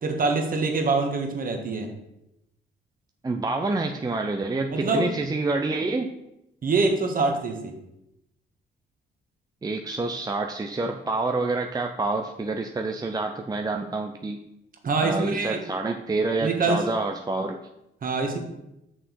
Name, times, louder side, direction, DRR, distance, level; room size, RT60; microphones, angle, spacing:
voice 1, 0.0-1.9 4.7-5.1 6.6-7.7 14.8-15.6 16.4-16.8 18.0-18.4, right 3 dB, 45° right, 3 dB, 1.6 m, -24 dB
voice 2, 3.2-6.1 9.6-14.4 15.0-17.6, right 3 dB, 20° right, 4 dB, 0.6 m, -27 dB
6.4 x 6.2 x 4.6 m, 0.87 s
cardioid pair, 90°, 20 cm